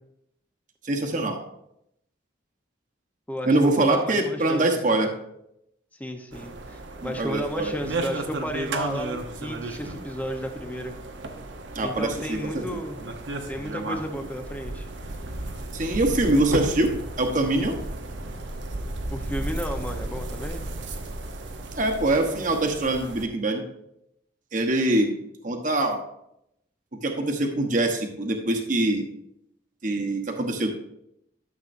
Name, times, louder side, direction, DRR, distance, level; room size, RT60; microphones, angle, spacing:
voice 1, 0.8-1.4 3.4-5.1 7.0-7.7 11.7-12.8 15.7-17.8 21.8-23.6 24.5-25.1 25.4-26.0 27.0-29.1 29.8-30.7, right 2 dB, 45° right, 2 dB, 1.1 m, -24 dB
voice 2, 3.3-5.1 6.0-10.9 11.8-13.1 13.5-14.9 19.1-20.7, equal, 10° left, 4 dB, 0.9 m, -33 dB
sound 1, 6.3-23.3, right 2 dB, 75° right, 0.9 m, -34 dB
12.5 x 7.2 x 2.7 m, 0.78 s
head